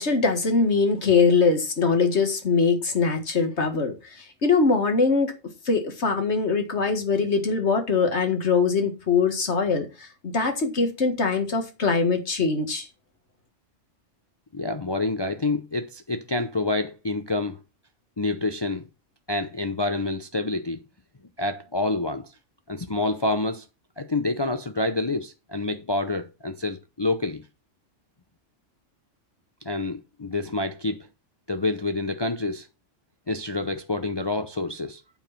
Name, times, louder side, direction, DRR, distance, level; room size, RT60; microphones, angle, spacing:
voice 1, 0.0-12.9, left 4 dB, 60° left, 2.0 m, -22 dB
voice 2, 14.5-17.6 18.2-18.9 19.3-20.8 21.4-22.3 22.7-23.6 24.0-27.4 29.6-31.1 31.5-32.7 33.3-35.0, left 2 dB, 25° left, 0.6 m, -27 dB
9.0 x 4.8 x 5.9 m
omnidirectional pair, 1.3 m